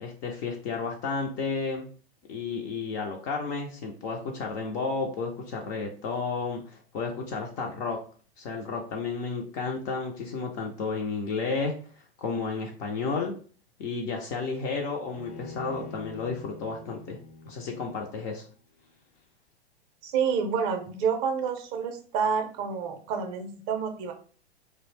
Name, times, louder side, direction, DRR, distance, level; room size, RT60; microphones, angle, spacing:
voice 1, 0.0-1.9 2.3-8.0 8.4-11.8 12.2-13.3 13.8-17.2 17.5-18.4, left 4 dB, 25° left, 2 dB, 0.3 m, -32 dB
Bowed string instrument, 15.1-18.4, left 3 dB, 75° left, 0.6 m, -45 dB
voice 2, 20.0-24.1, right 6 dB, 40° right, 6 dB, 0.5 m, -28 dB
2.5 x 2.0 x 3.1 m, 0.42 s
figure-of-eight pair, 105°, 32 cm